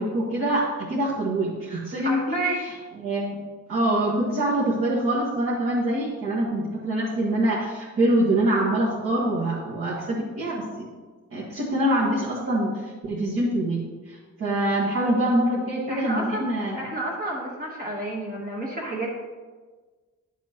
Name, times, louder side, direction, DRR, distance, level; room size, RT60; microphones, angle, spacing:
voice 1, 0.0-3.4 3.7-10.9 11.3-16.8, right 1 dB, 45° right, -7 dB, 1.5 m, -25 dB
voice 2, 2.0-2.6 15.9-16.4 16.7-19.1, right 2 dB, 30° right, -3 dB, 1.3 m, -30 dB
10.5 x 7.2 x 2.9 m, 1.4 s
cardioid pair, 170°, 30 cm